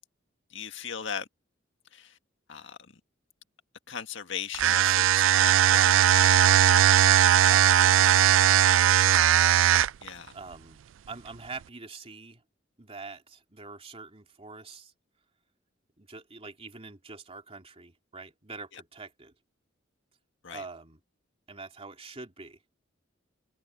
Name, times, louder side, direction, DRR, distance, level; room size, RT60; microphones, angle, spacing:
voice 1, 0.5-1.3 1.9-2.2 2.5-2.8 3.9-6.6 10.0-10.4 18.7-18.8 20.4-20.7, left 7 dB, 65° left, 1.8 m, -38 dB
sound 1, 4.5-10.1, right 11 dB, 70° right, 0.4 m, -19 dB
voice 2, 7.5-8.1 10.3-10.8 11.1-12.4 12.8-14.9 16.0-19.3 20.5-21.0 21.5-22.6, right 4 dB, 30° right, 3.0 m, -44 dB
head